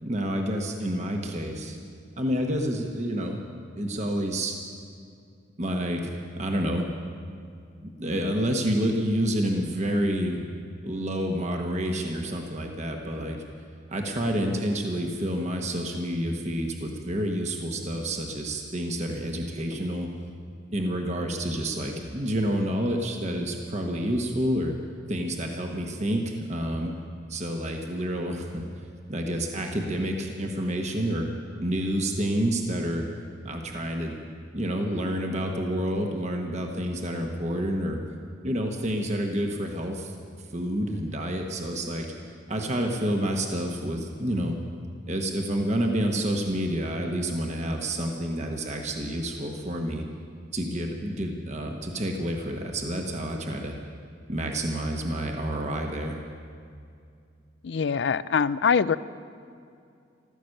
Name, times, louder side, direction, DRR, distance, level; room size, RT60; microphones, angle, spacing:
voice 1, 0.0-1.8 2.2-3.4 3.8-4.6 5.6-6.1 6.4-6.9 7.8-10.4 10.8-13.4 13.9-20.1 20.7-24.7 25.1-26.9 27.3-31.3 31.6-33.0 33.4-34.2 34.5-38.0 38.4-40.1 40.5-42.1 42.5-44.5 45.1-50.0 50.5-53.7 54.3-56.2, equal, 35° right, 2 dB, 1.1 m, -29 dB
voice 2, 57.6-59.0, left 6 dB, 60° left, 17 dB, 0.4 m, -23 dB
14.5 x 14.5 x 6.5 m, 2.4 s
head